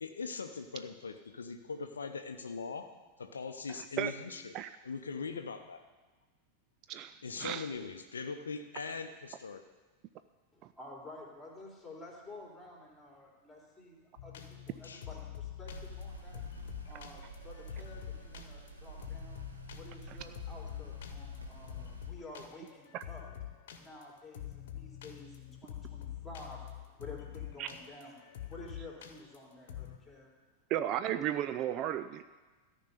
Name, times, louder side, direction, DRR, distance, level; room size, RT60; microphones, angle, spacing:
voice 1, 0.0-2.9 3.2-4.5 4.8-5.8 7.2-9.6 14.8-15.1, left 4 dB, 70° left, 7 dB, 0.6 m, -41 dB
voice 2, 6.9-7.7 22.9-23.0 27.6-27.7 30.7-32.2, right 11 dB, 35° right, 11 dB, 0.4 m, -34 dB
voice 3, 10.5-16.4 16.9-19.4 19.7-23.2 23.7-28.2 28.5-30.3, left 2 dB, 5° left, -2 dB, 3.2 m, -51 dB
sound 1, 14.2-30.0, left 11 dB, 55° left, 1.2 m, -46 dB
sound 2, 15.7-22.1, right 3 dB, 80° right, 1.6 m, -49 dB
13.5 x 5.4 x 8.2 m, 1.3 s
figure-of-eight pair, 90°, 0 cm